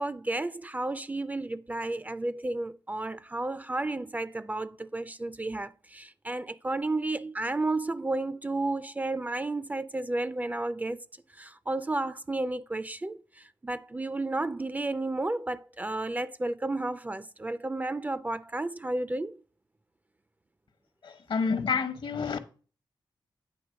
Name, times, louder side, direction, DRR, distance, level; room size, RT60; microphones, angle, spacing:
voice 1, 0.0-11.0 11.3-19.4, right 2 dB, 20° right, 0.3 m, -32 dB
voice 2, 21.0-22.4, left 5 dB, 65° left, 0.9 m, -29 dB
8.8 x 3.1 x 6.1 m
cardioid pair, 90°, 9 cm